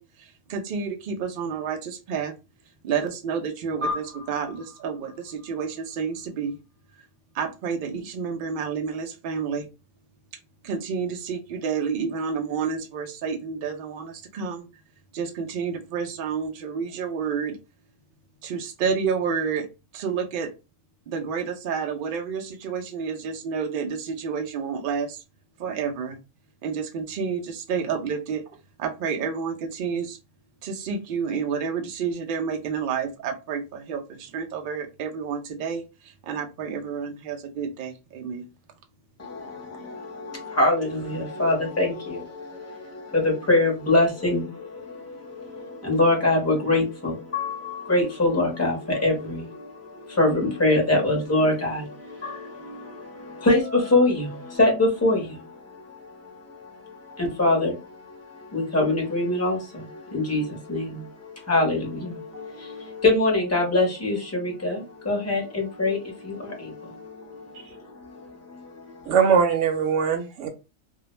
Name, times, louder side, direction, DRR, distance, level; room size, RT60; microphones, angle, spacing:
voice 1, 0.0-2.3 2.8-6.6 7.3-9.7 10.6-14.7 15.1-17.6 18.4-19.7 19.9-20.5 21.1-25.2 25.6-26.2 26.6-28.4 28.8-30.2 30.6-38.5, right 6 dB, 85° right, 3 dB, 0.4 m, -30 dB
sound 1, 3.8-6.5, left 2 dB, 30° right, 0.7 m, -36 dB
voice 2, 39.2-69.1, left 2 dB, 15° left, -1 dB, 0.6 m, -25 dB
voice 3, 69.1-70.5, right 6 dB, 65° right, 6 dB, 0.8 m, -21 dB
2.3 x 2.0 x 3.0 m, 0.28 s
omnidirectional pair, 1.5 m